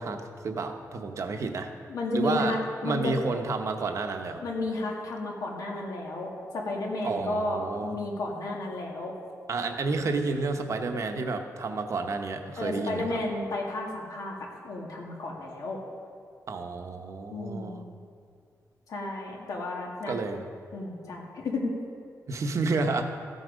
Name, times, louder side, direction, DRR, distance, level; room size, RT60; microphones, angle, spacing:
voice 1, 0.0-1.7 2.1-2.5 2.8-4.4 7.0-8.0 9.5-13.2 16.5-17.8 20.1-20.5 22.3-23.0, right 3 dB, 55° right, 5 dB, 1.0 m, -30 dB
voice 2, 1.9-3.2 4.4-9.1 12.6-15.8 17.3-17.8 18.9-20.1 20.7-21.7, left 2 dB, 75° left, -1 dB, 2.0 m, -32 dB
14.0 x 8.1 x 5.2 m, 2.2 s
wide cardioid pair, 140°, 6 cm